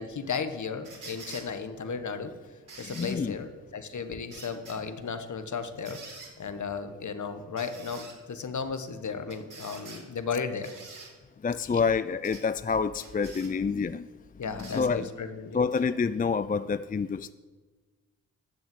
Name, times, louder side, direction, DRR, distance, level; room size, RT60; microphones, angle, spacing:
voice 1, 0.0-2.3 2.8-6.0 6.4-10.7 11.7-11.8 14.4-15.6, left 5 dB, 55° left, 9 dB, 1.6 m, -35 dB
sound 1, 0.8-1.5 2.7-3.2 4.3-4.8 5.9-6.3 7.6-8.2 9.3-10.0 10.6-11.1 12.2-12.4 12.9-13.5 14.6-14.9 15.8-15.9, right 4 dB, 60° right, 4.2 m, -46 dB
voice 2, 2.8-3.4 11.4-14.1 14.6-15.1 15.5-17.3, left 5 dB, 25° left, 14 dB, 0.5 m, -28 dB
13.0 x 7.1 x 7.9 m, 1.4 s
supercardioid pair, 45°, 36 cm